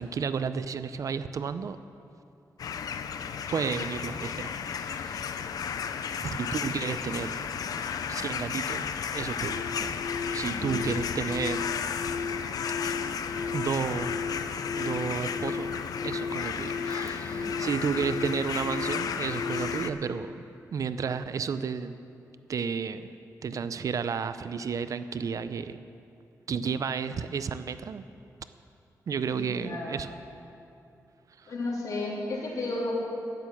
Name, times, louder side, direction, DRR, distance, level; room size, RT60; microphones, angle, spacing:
voice 1, 0.0-1.8 3.5-5.4 6.2-7.5 8.1-8.9 9.1-9.9 10.3-11.7 12.8-13.0 13.5-14.3 14.8-15.7 16.0-20.4 20.7-22.0 22.5-23.1 23.4-25.8 26.5-28.0 29.1-30.1 31.4-31.5, right 6 dB, 60° right, 12 dB, 0.5 m, -32 dB
sound 1, 2.6-19.9, left 7 dB, 85° left, 0.5 m, -34 dB
sound 2, 9.5-19.8, left 4 dB, 55° left, 1.4 m, -35 dB
voice 2, 29.3-30.0 31.5-32.9, left 2 dB, 70° left, -4 dB, 3.3 m, -33 dB
10.5 x 9.6 x 7.1 m, 2.7 s
cardioid pair, 95°, 6 cm